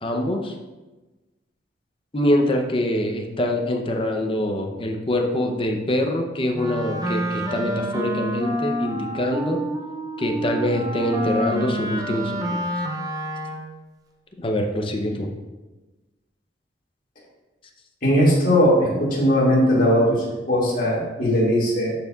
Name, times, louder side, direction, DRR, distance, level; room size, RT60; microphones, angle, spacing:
voice 1, 0.0-0.6 2.1-9.6 10.2-12.4 14.4-15.3, left 1 dB, 30° left, 3 dB, 0.6 m, -24 dB
Wind instrument woodwind instrument, 6.5-13.8, equal, 20° right, 0.6 m, -28 dB
voice 2, 18.0-21.9, equal, 50° left, -5 dB, 2.1 m, -19 dB
12.0 x 4.5 x 2.4 m, 1.2 s
head